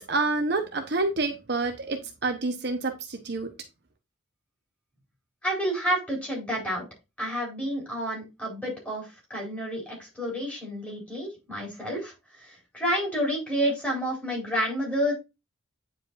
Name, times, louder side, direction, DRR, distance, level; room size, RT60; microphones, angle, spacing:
voice 1, 0.0-3.5, right 3 dB, 55° right, 0.9 m, -28 dB
voice 2, 5.4-6.9 7.2-15.1, equal, 5° left, 4.5 m, -30 dB
9.3 x 5.0 x 2.5 m
head